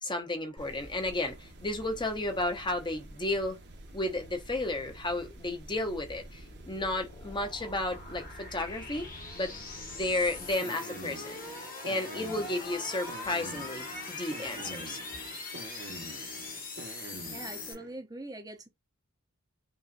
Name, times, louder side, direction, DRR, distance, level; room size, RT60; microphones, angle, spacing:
voice 1, 0.0-3.6 3.9-9.1 9.3-11.4 11.8-15.0, left 2 dB, 20° left, 0.9 m, -33 dB
sound 1, 0.6-18.0, right 2 dB, 50° right, 1.0 m, -48 dB
sound 2, 4.8-17.7, left 3 dB, 40° left, 1.6 m, -42 dB
voice 2, 17.3-18.7, right 2 dB, 15° right, 0.8 m, -42 dB
5.5 x 2.5 x 2.6 m
head